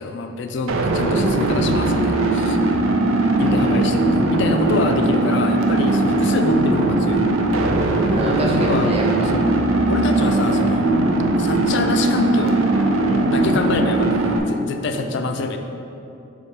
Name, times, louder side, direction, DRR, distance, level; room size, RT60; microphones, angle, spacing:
voice 1, 0.0-2.6 3.4-7.2 8.6-8.9 9.2-9.6 9.9-10.9 11.4-12.6 13.3-15.6, left 3 dB, 60° left, 5 dB, 0.4 m, -25 dB
sound 1, 0.7-14.4, right 2 dB, 90° right, 0.5 m, -19 dB
sound 2, 1.2-14.0, equal, 60° right, 0.7 m, -36 dB
voice 2, 3.3-3.9 8.1-9.3 13.1-13.3, right 1 dB, 30° right, -2 dB, 0.6 m, -27 dB
7.0 x 2.9 x 4.6 m, 2.7 s
head